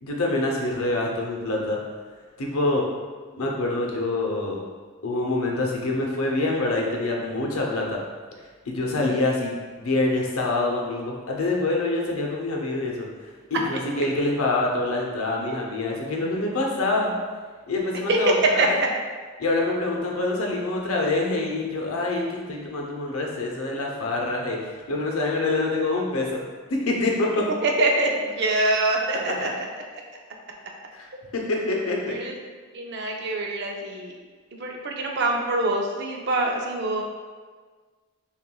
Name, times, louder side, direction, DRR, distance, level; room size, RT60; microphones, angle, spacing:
voice 1, 0.0-1.8 2.4-2.8 3.4-4.6 5.0-8.0 8.7-13.1 13.5-17.1 17.7-18.4 19.4-24.6 24.9-26.4 26.7-27.4 29.4-29.5 30.9-31.1 31.3-32.1, left 2 dB, 85° left, -1 dB, 0.7 m, -25 dB
voice 2, 27.6-29.7 32.1-32.4 32.7-34.1 34.6-37.0, right 2 dB, 50° right, 1 dB, 0.5 m, -25 dB
5.7 x 2.4 x 2.3 m, 1.5 s
head